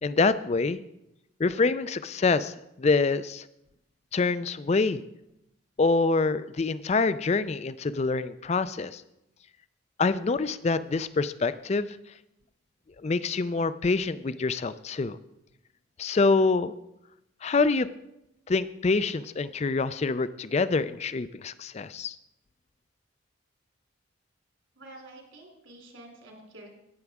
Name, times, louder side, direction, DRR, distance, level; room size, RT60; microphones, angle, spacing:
voice 1, 0.0-0.8 1.4-3.5 4.1-5.0 5.8-9.0 10.0-12.0 13.0-15.2 16.0-16.7 17.4-17.9 18.5-22.2, left 3 dB, 30° left, 15 dB, 0.3 m, -26 dB
voice 2, 24.7-26.7, right 1 dB, 75° right, 1 dB, 3.1 m, -48 dB
17.5 x 7.0 x 3.6 m, 0.86 s
head